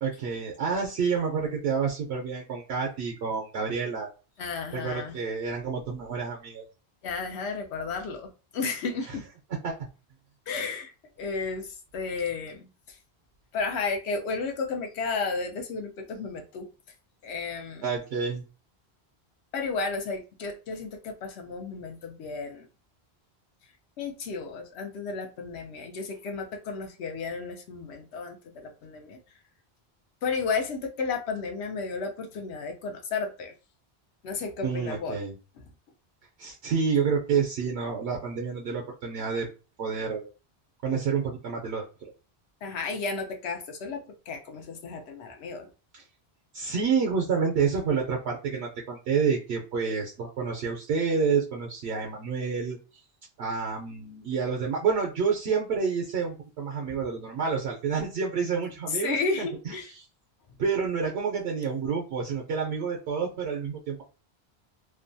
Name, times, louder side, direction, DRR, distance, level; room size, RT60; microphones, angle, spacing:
voice 1, 0.0-4.1 4.7-6.6 9.6-9.9 17.8-18.4 34.6-35.3 36.4-39.5 39.8-40.3 40.8-41.9 45.9-46.0 46.5-52.8 53.4-59.7 60.6-64.0, right 5 dB, 80° right, 0 dB, 0.9 m, -29 dB
voice 2, 4.4-5.2 7.0-9.2 10.5-10.9 11.2-13.0 13.5-16.7 17.2-17.9 19.5-22.7 24.0-29.2 30.2-33.5 34.2-35.2 42.6-45.7 58.9-59.9, left 4 dB, 85° left, 4 dB, 0.9 m, -33 dB
2.6 x 2.2 x 2.5 m, 0.33 s
omnidirectional pair, 1.1 m